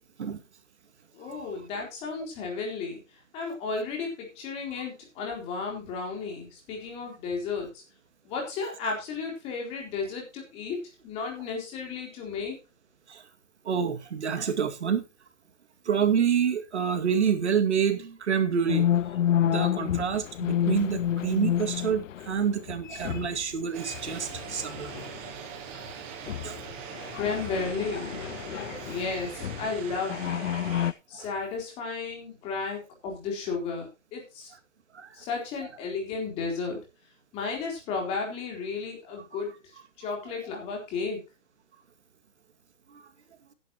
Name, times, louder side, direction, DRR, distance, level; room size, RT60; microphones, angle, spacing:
voice 1, 1.1-3.0 3.3-7.8 8.2-12.6 27.1-28.2 28.9-30.5 31.1-34.5 35.1-36.8 37.3-39.5 40.0-41.2, left 4 dB, 15° left, 3.9 m, -33 dB
voice 2, 13.6-15.0 15.9-18.9 19.4-25.1 26.4-26.6 28.7-28.8 31.1-31.3 34.9-35.1 42.9-43.0, right 7 dB, 60° right, 2.4 m, -27 dB
sound 1, 18.7-23.5 23.8-25.4 25.7-25.9 26.3-29.7 30.1-30.9, left 10 dB, 80° left, 0.5 m, -30 dB
sound 2, 23.7-30.9, right 8 dB, 10° right, 0.8 m, -41 dB
15.0 x 10.5 x 3.0 m
hypercardioid pair, 165°, 38 cm